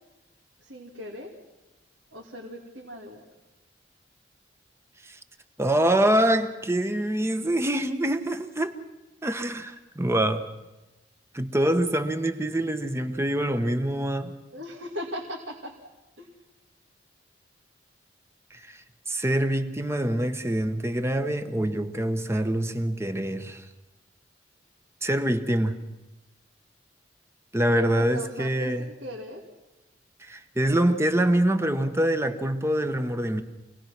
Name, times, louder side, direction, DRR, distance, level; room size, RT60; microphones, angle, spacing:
voice 1, 0.6-1.3 2.1-3.3 14.5-15.8 16.2-16.3 27.7-29.4, equal, 85° right, 2.6 m, -38 dB
voice 2, 5.6-8.7 9.2-10.5 11.3-14.3 18.5-23.6 25.0-25.8 27.5-28.9 30.2-33.4, right 1 dB, 15° right, 1.0 m, -25 dB
26.0 x 19.0 x 6.0 m
head